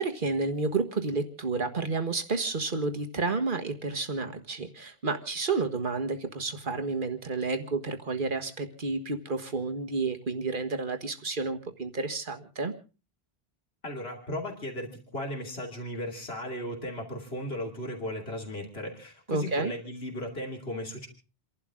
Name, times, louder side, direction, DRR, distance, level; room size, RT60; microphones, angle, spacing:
voice 1, 0.0-12.7 19.3-19.7, right 3 dB, 55° right, 6 dB, 1.7 m, -30 dB
voice 2, 13.8-21.1, left 1 dB, 75° left, 1 dB, 3.1 m, -36 dB
29.0 x 11.5 x 3.7 m, 0.35 s
omnidirectional pair, 1.1 m